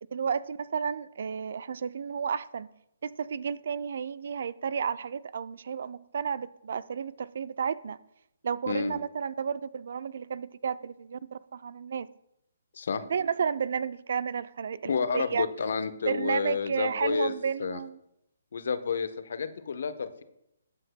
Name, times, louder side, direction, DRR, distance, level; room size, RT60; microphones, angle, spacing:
voice 1, 0.1-2.7 3.0-8.0 8.4-12.1 13.1-15.5 16.1-18.0, right 6 dB, 60° right, 0.4 m, -32 dB
voice 2, 8.7-9.0 12.7-13.0 14.8-17.3 17.6-17.8 18.5-20.2, left 5 dB, 60° left, 0.9 m, -30 dB
19.5 x 7.6 x 2.2 m
figure-of-eight pair, 135°, 0 cm